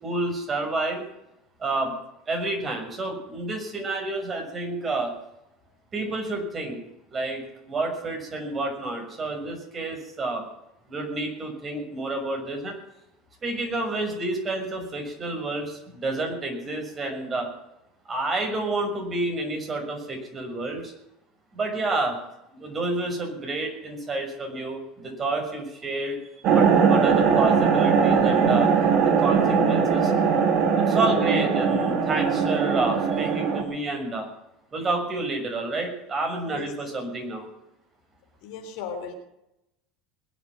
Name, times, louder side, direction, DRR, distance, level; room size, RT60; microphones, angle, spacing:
voice 1, 0.0-1.0 1.6-1.9 2.3-5.1 5.9-6.8 7.1-10.4 10.9-12.8 13.4-17.5 18.1-20.9 21.5-22.2 22.5-26.2 26.5-28.7 29.2-30.1 30.8-34.3 34.7-37.5, right 2 dB, 30° right, 2 dB, 6.4 m, -29 dB
sound 1, 26.4-33.6, right 6 dB, 55° right, 2.9 m, -20 dB
voice 2, 38.4-39.1, left 6 dB, 65° left, 5 dB, 3.5 m, -36 dB
21.0 x 8.4 x 7.5 m, 0.84 s
hypercardioid pair, 70°, 0 cm